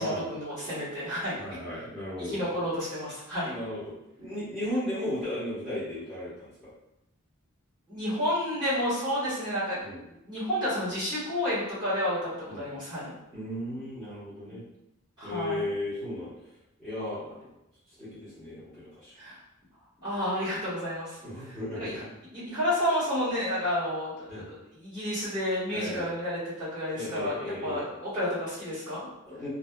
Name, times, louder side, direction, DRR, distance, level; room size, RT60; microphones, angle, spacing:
voice 1, 0.0-1.3 2.2-3.5 7.9-9.8 10.0-12.3 12.6-13.1 14.5-14.6 15.2-15.6 19.2-19.4 20.0-21.2 21.4-22.0 22.5-29.1, equal, 20° right, -13 dB, 1.4 m, -31 dB
voice 2, 1.4-2.4 3.4-6.7 9.8-10.0 12.5-12.6 13.3-14.6 15.2-16.3 16.8-17.5 18.0-19.1 21.2-22.0 24.3-24.4 25.7-26.1 26.9-27.9 29.3-29.5, left 1 dB, ahead, -16 dB, 1.1 m, -35 dB
2.6 x 2.4 x 2.2 m, 0.87 s
head